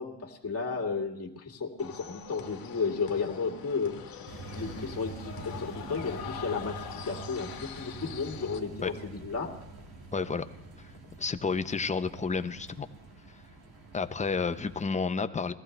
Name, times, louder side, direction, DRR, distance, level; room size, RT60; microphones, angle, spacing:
voice 1, 0.0-9.5, left 4 dB, 35° left, 1 dB, 2.2 m, -33 dB
sound 1, 1.8-8.6, left 8 dB, 60° left, 1.4 m, -44 dB
sound 2, 4.3-14.8, right 3 dB, 60° right, 2.1 m, -46 dB
voice 2, 10.1-10.4 11.2-12.9 13.9-15.5, left 4 dB, 20° left, 9 dB, 0.6 m, -30 dB
20.5 x 14.5 x 3.3 m, 0.83 s
cardioid pair, 110°, 41 cm